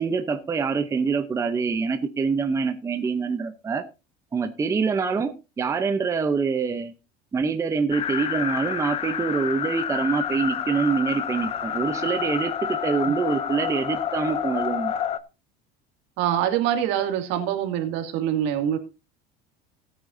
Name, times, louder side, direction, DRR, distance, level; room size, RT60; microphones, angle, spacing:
voice 1, 0.0-3.8 4.3-6.9 7.3-14.9, right 5 dB, 15° right, 0.8 m, -25 dB
sound 1, 7.9-15.2, left 9 dB, 30° left, 0.7 m, -29 dB
voice 2, 16.2-18.8, right 10 dB, 65° right, 2.4 m, -24 dB
17.5 x 8.8 x 2.7 m
cardioid pair, 160°, 20 cm